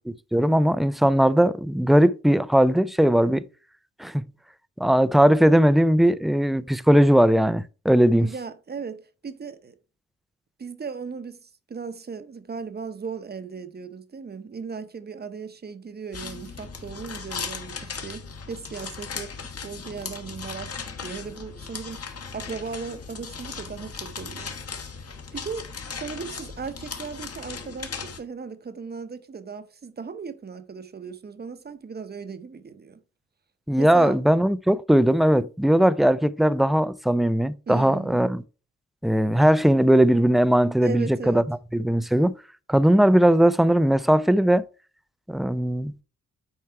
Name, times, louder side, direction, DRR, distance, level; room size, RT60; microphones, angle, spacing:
voice 1, 0.3-3.4 4.0-4.2 4.8-8.3 33.7-38.4 39.0-42.4 42.7-44.6 45.3-45.9, right 1 dB, ahead, 0.3 m, -19 dB
voice 2, 8.1-9.7 10.6-19.3 19.6-24.5 25.1-33.0 33.8-34.2 37.7-38.2 40.8-41.5, right 5 dB, 30° right, 0.8 m, -37 dB
sound 1, 16.1-28.2, left 5 dB, 50° left, 1.5 m, -37 dB
9.5 x 4.5 x 4.5 m
wide cardioid pair, 120°, 30 cm